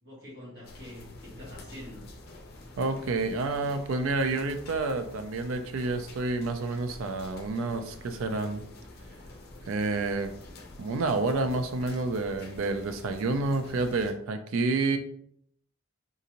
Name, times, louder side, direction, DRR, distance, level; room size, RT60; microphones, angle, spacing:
voice 1, 0.0-2.1, left 1 dB, 50° right, -4 dB, 1.4 m, -45 dB
sound 1, 0.6-14.1, left 2 dB, 45° left, 0.6 m, -48 dB
voice 2, 2.8-8.6 9.7-10.3 10.8-15.0, right 3 dB, 75° right, 8 dB, 0.4 m, -29 dB
3.9 x 2.5 x 2.8 m, 0.67 s
head